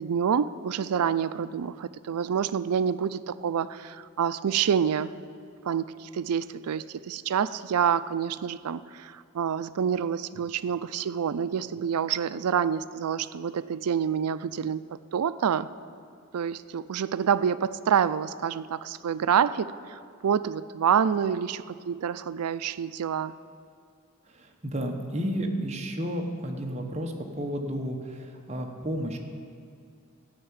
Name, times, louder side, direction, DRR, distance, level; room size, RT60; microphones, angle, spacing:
voice 1, 0.0-5.1 5.6-15.7 16.3-23.3, right 8 dB, 90° right, 15 dB, 0.4 m, -27 dB
voice 2, 24.3-29.2, equal, 30° right, 2 dB, 1.0 m, -32 dB
13.0 x 5.7 x 8.9 m, 2.3 s
head